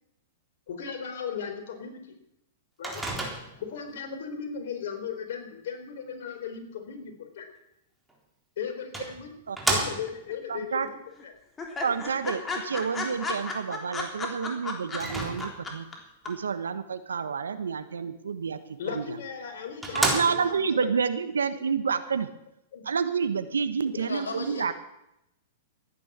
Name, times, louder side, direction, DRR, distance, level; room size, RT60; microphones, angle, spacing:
voice 1, 0.7-2.0 2.8-3.0 3.6-7.5 8.6-9.3 9.7-11.0 11.2-11.3 11.8-12.1 18.8-20.9 21.5-21.6 22.7-22.8 23.9-24.7, left 7 dB, 65° left, 5 dB, 3.8 m, -37 dB
Microwave oven, 2.8-3.7 8.1-8.2 8.9-10.3 14.9-15.8 18.9-19.0 19.5-19.6 19.8-20.7, right 2 dB, 5° right, 3.8 m, -30 dB
sound 1, 9.9-10.5 10.8-10.9 11.2-11.3 11.6-15.9 16.2-16.3, left 4 dB, 20° left, 3.2 m, -34 dB
voice 2, 10.5-10.9 11.8-15.8 16.2-18.6 18.9-19.0 19.9-22.3 22.8-24.7, right 6 dB, 85° right, 12 dB, 1.2 m, -29 dB
voice 3, 24.0-24.7, left 4 dB, 85° left, 3 dB, 4.4 m, -36 dB
14.5 x 10.0 x 7.3 m, 0.83 s
hypercardioid pair, 115°, 0 cm